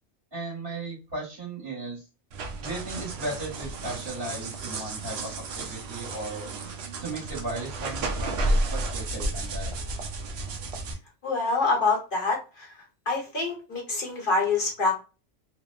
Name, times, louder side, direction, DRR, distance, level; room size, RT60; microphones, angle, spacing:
voice 1, 0.3-2.0 2.6-6.5 7.0-9.7, right 2 dB, 50° right, -7 dB, 1.5 m, -36 dB
sound 1, 2.3-10.9, right 2 dB, 65° right, 0.7 m, -32 dB
voice 2, 11.2-12.7 13.1-15.0, left 3 dB, 50° left, -1 dB, 1.0 m, -26 dB
2.8 x 2.0 x 2.3 m, 0.31 s
omnidirectional pair, 1.3 m